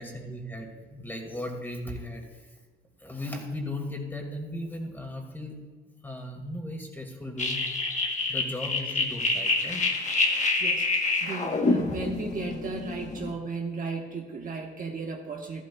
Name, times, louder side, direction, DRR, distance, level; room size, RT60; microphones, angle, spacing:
voice 1, 0.0-2.4 3.0-5.6 6.0-7.9 8.3-9.8, left 1 dB, 10° left, 1 dB, 2.2 m, -37 dB
sound 1, 7.4-13.3, left 3 dB, 35° left, 1.2 m, -27 dB
voice 2, 10.6-15.6, right 4 dB, 45° right, 1 dB, 1.3 m, -35 dB
13.5 x 12.5 x 2.3 m, 1.4 s
cardioid pair, 90°, 20 cm